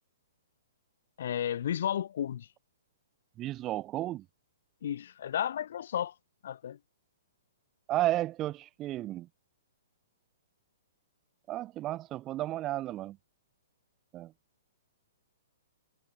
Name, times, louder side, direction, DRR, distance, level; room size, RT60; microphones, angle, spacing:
voice 1, 1.2-2.5 4.8-6.1 6.4-6.8, left 10 dB, 65° left, 3.4 m, -33 dB
voice 2, 3.4-4.2 7.9-9.3 11.5-13.2 14.1-14.3, right 15 dB, 25° right, 0.9 m, -33 dB
hypercardioid pair, 145°, 0 cm